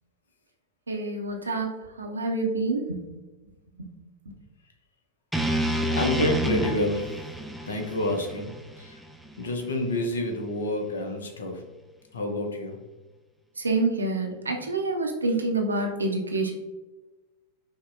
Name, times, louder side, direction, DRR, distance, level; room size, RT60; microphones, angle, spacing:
voice 1, 0.9-1.7 2.0-3.0 3.8-3.9 13.6-16.5, right 2 dB, 75° right, 2 dB, 0.5 m, -27 dB
sound 1, 5.3-9.5, equal, ahead, 0.3 m, -29 dB
voice 2, 5.9-7.3 7.7-8.5 8.8-9.0 9.4-11.6 12.1-12.8, left 1 dB, 70° left, 4 dB, 0.6 m, -28 dB
5.1 x 2.1 x 2.5 m, 1.2 s
figure-of-eight pair, 90°, 0 cm